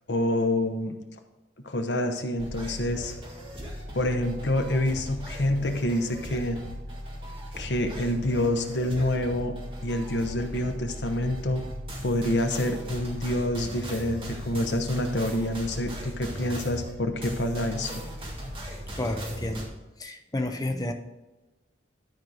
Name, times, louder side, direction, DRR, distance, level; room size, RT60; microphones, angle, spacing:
voice 1, 0.1-1.0 1.6-3.2 3.9-6.6 7.6-9.5 9.8-11.6 12.0-18.0, left 1 dB, 65° left, 5 dB, 1.1 m, -27 dB
sound 1, 2.4-19.6, equal, 30° right, 2.1 m, -38 dB
voice 2, 19.0-19.7 20.0-20.9, left 1 dB, 20° left, 5 dB, 0.7 m, -30 dB
12.0 x 4.6 x 5.0 m, 1.1 s
head